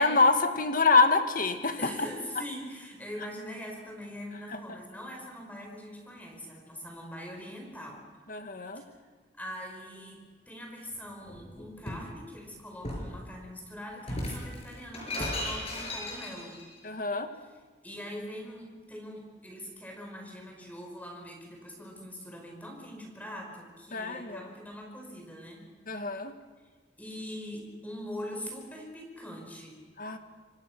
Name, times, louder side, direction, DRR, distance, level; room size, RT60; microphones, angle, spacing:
voice 1, 0.0-1.8 8.3-8.8 16.8-17.3 23.9-24.5 25.9-26.3 30.0-30.2, left 3 dB, 50° left, 7 dB, 2.0 m, -25 dB
voice 2, 1.8-8.0 8.8-8.9 9.4-16.6 17.3-17.6 17.8-25.7 27.0-29.8, equal, 10° left, 0 dB, 5.2 m, -42 dB
Shatter, 11.2-12.1 12.8-13.2 14.0-16.6, left 1 dB, 35° left, 6.8 m, -36 dB
29.0 x 25.0 x 6.1 m, 1.4 s
head